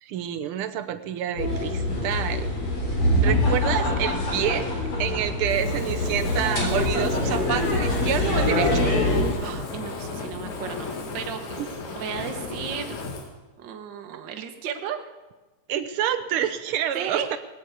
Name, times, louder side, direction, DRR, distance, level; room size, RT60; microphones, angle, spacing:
voice 1, 0.0-2.5 3.2-8.9 11.6-11.7 15.7-17.4, right 10 dB, 80° right, 10 dB, 1.2 m, -28 dB
sound 1, 1.4-9.3, left 1 dB, 45° left, 4.6 m, -24 dB
Fire, 5.4-13.3, left 3 dB, 75° left, 3.2 m, -35 dB
voice 2, 9.4-10.9 11.1-11.4 11.9-12.9 13.6-15.0 16.9-17.3, right 8 dB, 50° right, 5 dB, 1.5 m, -33 dB
18.0 x 9.3 x 8.3 m, 1.1 s
omnidirectional pair, 3.4 m